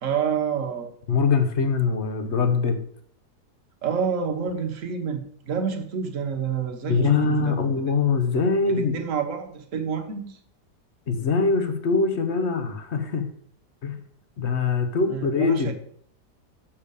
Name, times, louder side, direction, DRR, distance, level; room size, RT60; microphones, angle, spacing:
voice 1, 0.0-0.9 3.8-7.6 8.8-10.4 15.1-15.7, right 6 dB, 50° right, 5 dB, 1.4 m, -28 dB
voice 2, 1.1-2.8 6.9-9.0 11.1-13.3 13.8-14.0 14.4-15.7, left 4 dB, 45° left, 7 dB, 1.2 m, -23 dB
6.8 x 5.6 x 6.8 m, 0.62 s
omnidirectional pair, 1.8 m